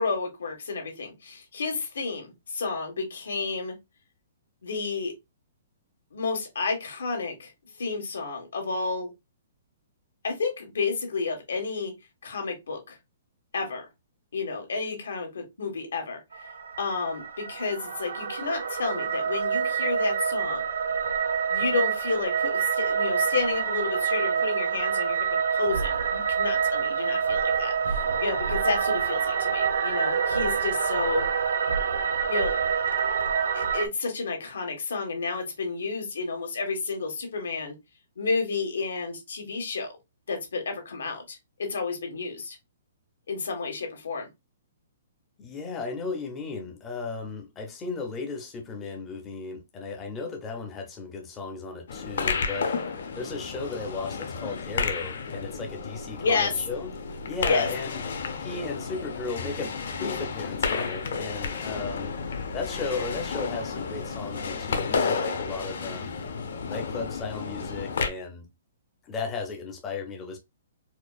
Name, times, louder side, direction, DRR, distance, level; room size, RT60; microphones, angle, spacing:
voice 1, 0.0-3.8 4.6-5.1 6.1-7.5 7.8-9.1 10.2-11.9 12.2-13.0 13.5-13.8 14.3-16.2 16.8-20.6 21.5-25.3 25.5-31.3 32.3-32.6 33.5-37.7 38.2-39.9 40.3-42.6 43.3-44.3 56.2-56.5 57.4-57.7, left 4 dB, 90° left, 1.4 m, -31 dB
sound 1, 16.3-33.9, right 6 dB, 80° right, 0.5 m, -27 dB
voice 2, 45.4-52.7 53.2-56.9 57.3-58.0 58.4-62.1 62.5-66.2 66.7-68.4 69.0-70.4, left 4 dB, 10° left, 0.4 m, -35 dB
sound 2, 51.9-68.1, left 5 dB, 60° left, 0.7 m, -32 dB
4.3 x 2.5 x 2.3 m
hypercardioid pair, 180°, 0 cm